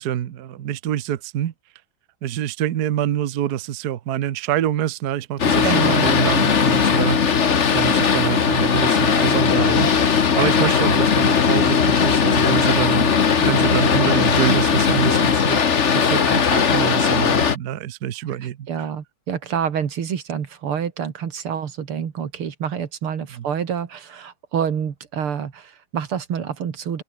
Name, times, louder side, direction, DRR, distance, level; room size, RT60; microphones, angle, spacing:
voice 1, 0.0-1.5 2.2-10.1 10.3-18.9 23.4-23.5, right 11 dB, 55° right, 1.3 m, -26 dB
Boat Water vehicle, 5.4-17.6, left 6 dB, 40° left, 1.4 m, -18 dB
voice 2, 5.6-6.1 18.3-27.0, right 7 dB, 85° right, 2.8 m, -27 dB
open air
omnidirectional pair, 2.3 m